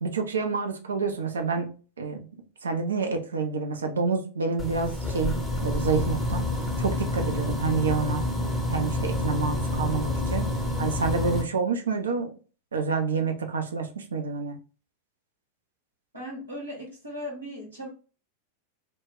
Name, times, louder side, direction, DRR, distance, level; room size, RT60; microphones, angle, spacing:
voice 1, 0.0-2.3 2.6-6.5 6.8-8.2 8.7-10.5 10.8-12.3 12.7-14.6, right 4 dB, 70° right, 0.4 m, -28 dB
sound 1, 4.6-11.4, left 1 dB, 5° left, 0.6 m, -28 dB
voice 2, 16.1-17.9, equal, 85° right, 0.9 m, -37 dB
2.2 x 2.0 x 3.5 m
figure-of-eight pair, 90°, 0 cm